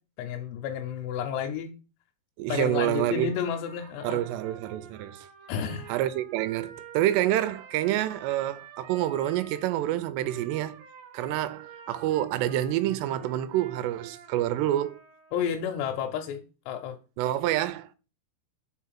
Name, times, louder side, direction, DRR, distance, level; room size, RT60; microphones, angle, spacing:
voice 1, 0.2-1.7 2.5-4.2 5.5-5.9 15.3-17.0, left 8 dB, 85° left, 2.9 m, -31 dB
voice 2, 2.4-3.3 4.0-5.3 5.9-10.8 11.1-15.0 17.2-17.9, right 13 dB, 85° right, 2.7 m, -27 dB
Trumpet, 3.2-9.7 10.2-15.5, right 5 dB, 65° right, 2.6 m, -49 dB
5.5 x 4.7 x 5.8 m
omnidirectional pair, 4.9 m